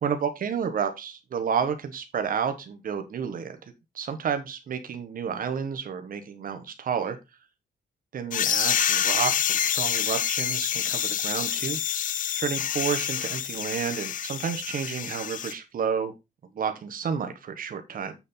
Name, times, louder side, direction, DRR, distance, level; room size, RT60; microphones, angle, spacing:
voice 1, 0.0-3.6 3.9-7.2 8.1-11.8 12.3-16.1 16.5-18.2, right 7 dB, 55° right, 7 dB, 1.5 m, -30 dB
sound 1, 8.3-15.5, left 10 dB, 50° left, 0.4 m, -27 dB
7.9 x 7.0 x 3.9 m, 0.24 s
wide cardioid pair, 170°, 18 cm